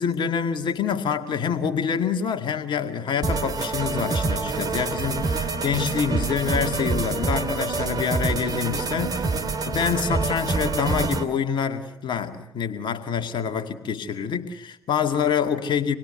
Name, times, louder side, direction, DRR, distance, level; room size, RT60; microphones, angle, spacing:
voice 1, 0.0-9.3 9.6-16.0, left 7 dB, 50° left, 6 dB, 2.3 m, -26 dB
sound 1, 3.2-11.2, right 3 dB, 40° right, 2.7 m, -26 dB
26.5 x 20.5 x 8.0 m, 0.84 s
figure-of-eight pair, 45°, 10 cm